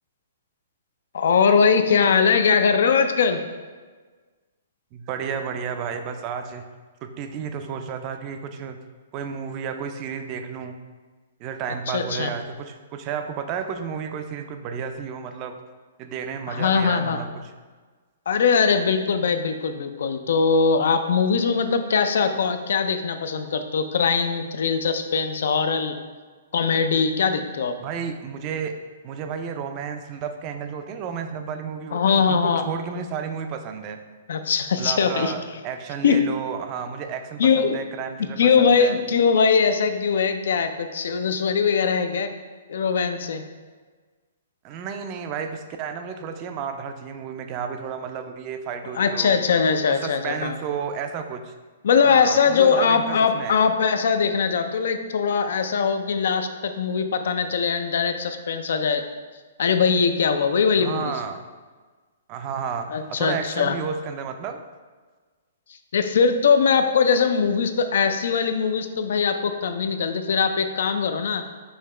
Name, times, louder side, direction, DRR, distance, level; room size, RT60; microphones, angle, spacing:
voice 1, 1.1-3.4 11.9-12.3 16.5-17.2 18.3-25.9 26.5-27.7 31.9-32.7 34.3-35.3 36.0-36.2 37.4-37.8 38.4-42.3 42.7-43.4 49.0-50.6 51.8-59.0 59.6-61.1 62.9-63.8 65.9-71.4, left 5 dB, 70° left, 8 dB, 0.4 m, -21 dB
voice 2, 4.9-6.6 7.0-8.8 9.1-10.7 11.4-15.6 16.0-17.4 27.8-28.8 29.0-34.0 34.8-39.0 44.6-49.4 49.9-51.5 52.0-53.6 60.8-61.4 62.3-64.6, right 6 dB, 35° right, 7 dB, 0.4 m, -32 dB
5.5 x 2.9 x 3.2 m, 1.4 s
hypercardioid pair, 135°, 0 cm